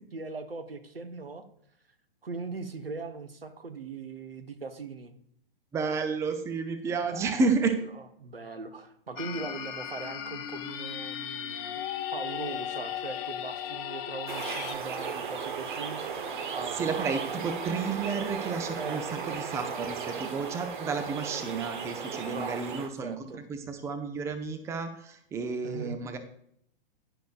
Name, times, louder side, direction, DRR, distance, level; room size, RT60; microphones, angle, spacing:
voice 1, 0.1-1.4 2.2-5.1 7.0-7.4 8.2-11.8 12.1-16.0 16.5-17.4 18.7-19.1 22.3-22.7 23.0-23.4 25.6-26.0, right 4 dB, 80° right, 7 dB, 1.3 m, -40 dB
voice 2, 5.7-7.7 16.8-23.2 23.5-26.2, right 4 dB, 10° right, 7 dB, 0.7 m, -31 dB
sound 1, 9.2-14.7, left 10 dB, 20° left, 0.5 m, -36 dB
sound 2, 14.3-22.9, right 6 dB, 55° right, 1.4 m, -36 dB
11.5 x 10.5 x 2.5 m, 0.70 s
figure-of-eight pair, 115°, 29 cm